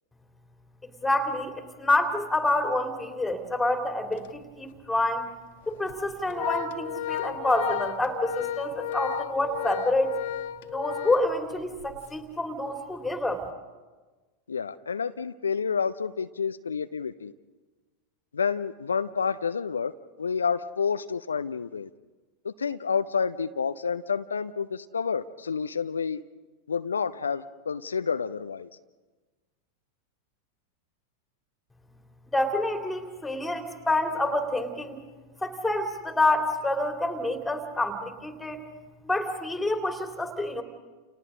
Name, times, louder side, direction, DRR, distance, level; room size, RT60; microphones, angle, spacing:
voice 1, 1.0-5.2 5.7-10.1 10.7-13.4 32.3-35.0 35.4-38.6 39.0-40.6, left 2 dB, 5° left, 5 dB, 3.0 m, -27 dB
Organ, 4.1-4.3 4.7-4.8 5.7-12.0, left 11 dB, 55° left, 1.2 m, -34 dB
voice 2, 14.5-17.3 18.3-19.9 20.2-21.9 22.4-26.2 26.7-28.7, left 6 dB, 70° left, 11 dB, 0.6 m, -29 dB
30.0 x 30.0 x 3.8 m, 1.3 s
figure-of-eight pair, 90°, 0 cm